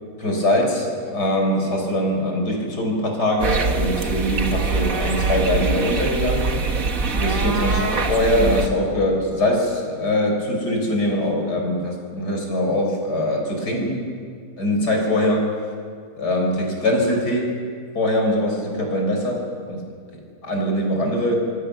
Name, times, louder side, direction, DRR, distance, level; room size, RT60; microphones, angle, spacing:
voice 1, 0.2-6.4 7.1-7.8 8.1-14.0 14.6-15.5 16.2-17.6 17.9-19.8 20.1-21.4, left 1 dB, 80° left, 1 dB, 5.7 m, -22 dB
sound 1, 3.4-8.7, right 4 dB, 55° right, 2.0 m, -23 dB
27.0 x 22.0 x 7.0 m, 2.1 s
omnidirectional pair, 1.7 m